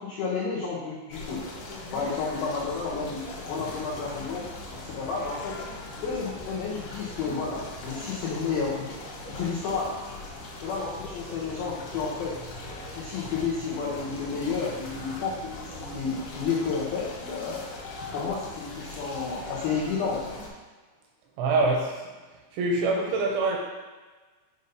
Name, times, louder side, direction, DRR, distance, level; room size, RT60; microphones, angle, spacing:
voice 1, 0.0-1.4 1.9-4.5 4.8-5.6 6.0-8.9 9.3-9.9 10.6-12.4 12.9-17.6 18.1-20.2, left 5 dB, 85° left, -6 dB, 2.1 m, -31 dB
sound 1, 1.1-20.5, left 2 dB, 70° left, 2.5 m, -40 dB
voice 2, 21.4-22.1 22.5-23.6, right 2 dB, 85° right, 0 dB, 2.8 m, -25 dB
8.0 x 2.7 x 5.4 m, 1.3 s
omnidirectional pair, 5.7 m